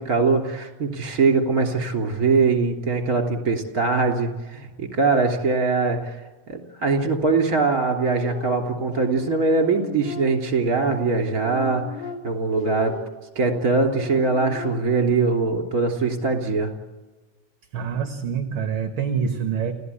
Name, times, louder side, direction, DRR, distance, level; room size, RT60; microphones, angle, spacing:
voice 1, 0.0-6.2 6.5-11.8 12.2-13.0 13.4-16.7, right 4 dB, 30° right, 3 dB, 3.5 m, -22 dB
sound 1, 8.2-10.7 11.2-15.1, left 6 dB, 55° left, 4.2 m, -37 dB
voice 2, 17.7-19.7, right 6 dB, 50° right, 6 dB, 1.9 m, -26 dB
29.5 x 16.5 x 8.5 m, 1.2 s
omnidirectional pair, 3.5 m